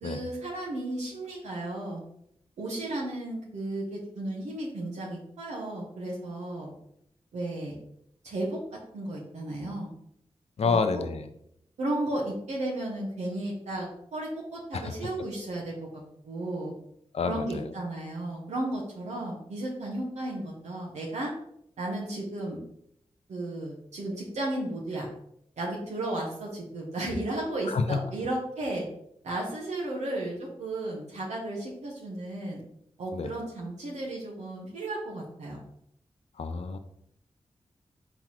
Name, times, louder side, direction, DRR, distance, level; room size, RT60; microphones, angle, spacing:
voice 1, 0.0-2.0 2.6-6.7 7.3-7.7 8.2-8.6 8.9-9.9 10.6-11.0 11.8-15.9 16.2-16.7 17.2-21.3 21.8-22.6 23.3-25.1 25.6-28.9 29.2-32.6 33.0-35.6, right 1 dB, 85° right, -3 dB, 0.9 m, -34 dB
voice 2, 10.6-11.3 14.7-14.9 17.1-17.7 27.7-28.0 33.1-33.3 36.4-36.8, left 4 dB, 65° left, 9 dB, 0.5 m, -28 dB
4.4 x 4.0 x 3.0 m, 0.73 s
cardioid pair, 40°, 12 cm